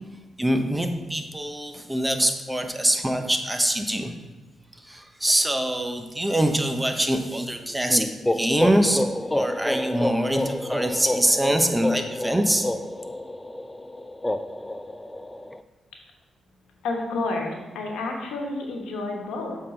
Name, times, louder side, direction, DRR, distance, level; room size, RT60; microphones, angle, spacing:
voice 1, 0.4-4.1 4.8-9.0 9.3-12.7, right 1 dB, 10° right, 6 dB, 0.9 m, -24 dB
sound 1, 7.9-15.6, left 1 dB, 15° left, 0.4 m, -29 dB
voice 2, 16.8-19.6, left 2 dB, 90° left, 1 dB, 1.2 m, -30 dB
7.5 x 3.9 x 5.2 m, 1.2 s
supercardioid pair, 60°, 0 cm